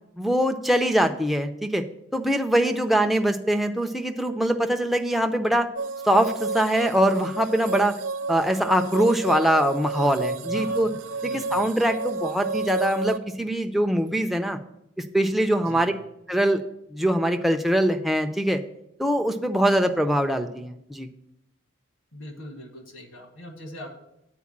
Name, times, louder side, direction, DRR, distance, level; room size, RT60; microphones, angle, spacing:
voice 1, 0.2-1.8 2.1-5.7 6.0-7.9 8.3-10.9 11.2-14.6 15.1-15.9 16.3-16.6 16.9-18.6 19.0-21.1, right 1 dB, ahead, 4 dB, 0.4 m, -23 dB
sound 1, 5.8-13.2, right 3 dB, 85° right, 0.5 m, -31 dB
voice 2, 10.0-11.7 15.6-15.9 22.1-24.0, equal, 70° left, 4 dB, 1.5 m, -42 dB
8.5 x 4.5 x 7.2 m, 0.81 s
head